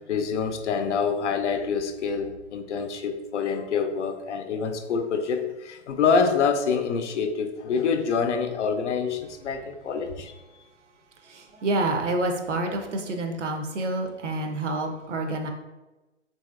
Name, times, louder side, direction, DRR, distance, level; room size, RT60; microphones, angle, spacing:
voice 1, 0.0-10.3, left 5 dB, 70° left, 6 dB, 0.5 m, -26 dB
voice 2, 11.3-15.5, right 2 dB, 75° right, 5 dB, 0.6 m, -28 dB
3.1 x 2.7 x 2.3 m, 1.1 s
figure-of-eight pair, 120°, 36 cm